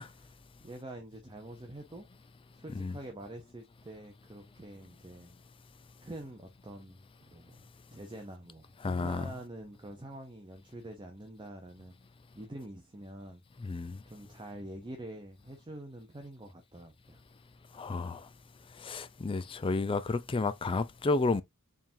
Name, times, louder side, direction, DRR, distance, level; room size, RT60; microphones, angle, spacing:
voice 1, 0.0-2.1 2.5-5.3 6.0-7.0 7.3-11.9 12.3-13.4 14.1-17.2 18.0-18.1, right 1 dB, 20° right, 0.7 m, -46 dB
voice 2, 8.8-9.3 13.6-14.0 17.8-18.2 18.8-21.4, left 3 dB, 25° left, 0.4 m, -31 dB
4.6 x 3.6 x 2.6 m
head